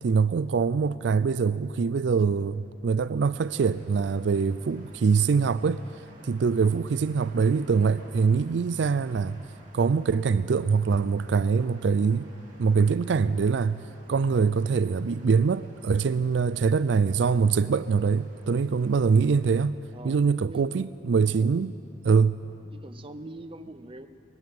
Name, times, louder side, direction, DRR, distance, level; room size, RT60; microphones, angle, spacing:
voice 1, 0.0-5.8 6.2-9.4 9.7-12.3 12.6-13.8 14.1-19.8 20.0-21.7 22.0-22.4, right 5 dB, 75° right, 0.4 m, -24 dB
sound 1, 3.4-19.7, right 1 dB, 45° right, 3.4 m, -56 dB
voice 2, 19.9-20.9 21.4-21.7 22.7-24.1, right 1 dB, 30° right, 0.8 m, -44 dB
20.0 x 19.5 x 7.7 m
head